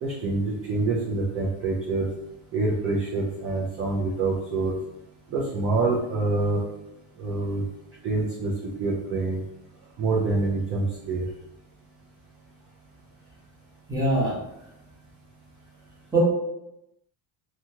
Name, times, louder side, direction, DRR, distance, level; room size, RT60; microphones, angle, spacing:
voice 1, 0.0-2.1 2.5-4.7 5.3-6.6 7.2-7.6 8.0-9.4 10.0-11.2, right 3 dB, 35° right, -4 dB, 0.4 m, -26 dB
voice 2, 13.9-14.3 16.1-16.2, right 2 dB, 10° right, -7 dB, 0.9 m, -22 dB
2.8 x 2.3 x 2.8 m, 0.86 s
cardioid pair, 155°, 46 cm